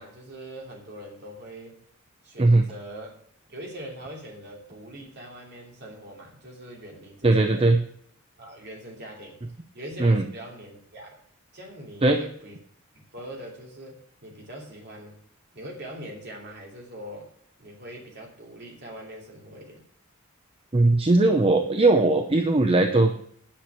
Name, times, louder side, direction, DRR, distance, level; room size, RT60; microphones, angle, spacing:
voice 1, 0.0-1.8 2.2-3.2 3.5-7.7 8.4-9.4 9.7-11.2 11.5-12.6 12.9-15.2 15.5-17.3 17.6-19.8, right 1 dB, 50° right, -1 dB, 2.9 m, -42 dB
voice 2, 7.2-7.8 10.0-10.2 12.0-12.2 20.7-23.2, right 2 dB, 25° right, 6 dB, 0.6 m, -19 dB
10.5 x 6.2 x 7.2 m, 0.63 s
head